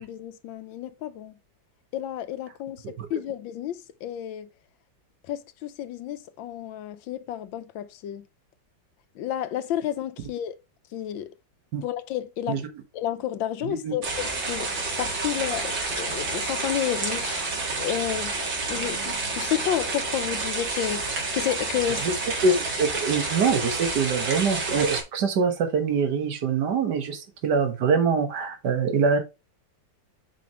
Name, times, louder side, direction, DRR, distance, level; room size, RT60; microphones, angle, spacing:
voice 1, 0.0-1.3 1.9-2.8 3.1-4.5 5.3-8.2 9.2-10.6 10.9-11.3 11.8-12.6 12.9-17.4 17.8-22.1, left 11 dB, 85° left, 1.4 m, -31 dB
voice 2, 13.6-14.0 22.0-22.1 22.4-29.2, right 5 dB, 60° right, 1.9 m, -24 dB
sound 1, 14.0-25.0, right 3 dB, 80° right, 2.7 m, -29 dB
7.6 x 5.1 x 2.9 m
omnidirectional pair, 2.0 m